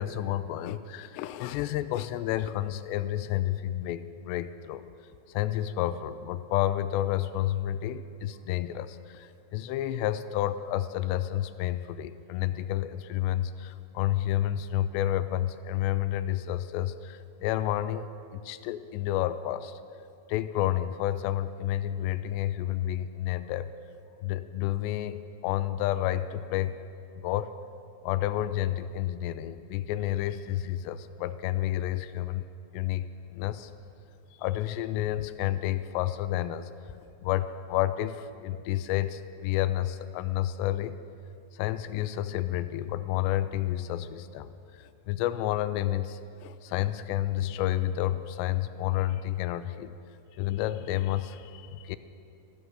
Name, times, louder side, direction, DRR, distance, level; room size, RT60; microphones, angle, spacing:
voice 1, 0.0-4.8 5.3-19.8 20.3-23.7 24.2-26.8 27.2-27.6 28.0-32.4 32.7-33.7 34.4-36.7 37.2-41.0 41.5-49.9 50.3-52.0, left 13 dB, 85° left, 13 dB, 2.6 m, -30 dB
14.5 x 13.5 x 6.3 m, 2.6 s
omnidirectional pair, 5.1 m